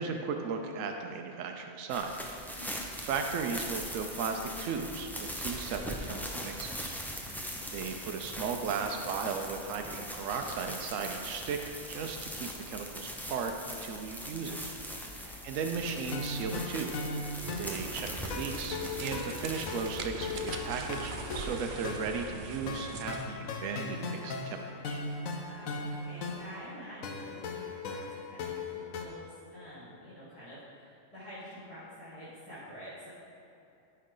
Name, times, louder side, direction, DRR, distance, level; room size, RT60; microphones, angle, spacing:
voice 1, 0.0-2.1 3.0-7.0 7.3-7.4 7.7-11.6 11.9-14.7 15.4-16.9 17.6-25.0, right 5 dB, 75° right, 4 dB, 1.0 m, -36 dB
sound 1, 1.9-21.7, equal, 5° left, 0.4 m, -41 dB
voice 2, 7.1-7.6 15.0-15.4 25.4-33.1, equal, 25° left, -14 dB, 2.4 m, -48 dB
sound 2, 16.1-29.1, left 3 dB, 85° left, 1.2 m, -39 dB
sound 3, 17.3-23.4, right 5 dB, 55° right, 0.6 m, -42 dB
14.0 x 4.7 x 3.8 m, 2.7 s
omnidirectional pair, 1.4 m